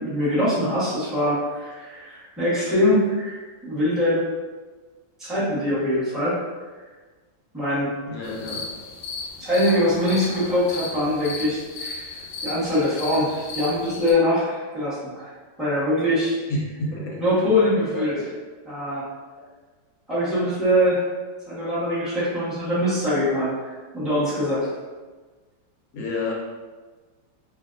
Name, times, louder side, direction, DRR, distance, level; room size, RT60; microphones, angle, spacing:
voice 1, 0.0-4.2 5.2-6.4 7.5-7.9 9.4-12.1 12.4-15.3 15.6-16.4 17.2-18.1 18.7-19.0 20.1-21.0 21.5-24.7, left 1 dB, ahead, -12 dB, 0.9 m, -23 dB
voice 2, 8.0-8.7 16.5-17.2 18.1-18.2 25.9-26.3, left 2 dB, 60° left, -4 dB, 1.0 m, -29 dB
sound 1, 8.2-14.1, left 4 dB, 75° left, 1.3 m, -35 dB
3.2 x 2.6 x 2.6 m, 1.3 s
omnidirectional pair, 2.1 m